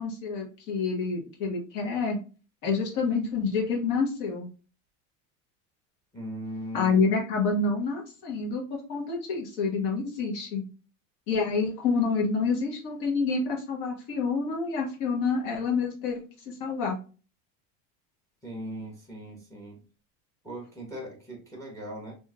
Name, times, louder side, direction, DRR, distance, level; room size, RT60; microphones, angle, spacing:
voice 1, 0.0-2.2 2.6-4.5 6.7-8.6 8.9-10.6 11.3-17.0, left 4 dB, 55° left, -1 dB, 1.2 m, -28 dB
voice 2, 6.1-7.0 18.4-19.8 20.4-22.1, equal, 5° left, 0 dB, 0.9 m, -39 dB
3.0 x 2.7 x 2.4 m, 0.35 s
supercardioid pair, 140°, 42 cm